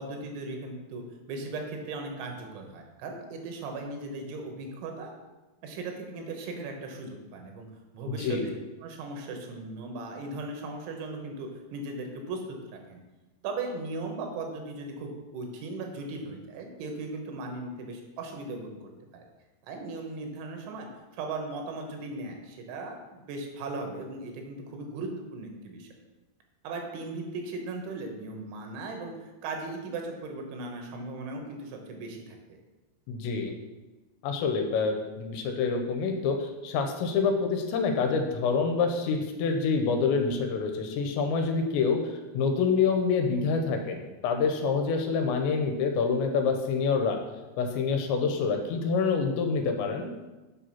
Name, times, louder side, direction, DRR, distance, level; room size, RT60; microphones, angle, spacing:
voice 1, 0.0-5.1 5.6-7.7 7.9-8.5 8.8-13.0 13.4-19.2 19.7-20.9 21.1-25.9 26.6-32.6, right 3 dB, 90° right, 3 dB, 3.6 m, -38 dB
voice 2, 33.1-33.5 34.2-47.2 47.6-50.1, left 5 dB, 80° left, 4 dB, 3.0 m, -27 dB
8.0 x 5.5 x 5.7 m, 1.1 s
omnidirectional pair, 5.3 m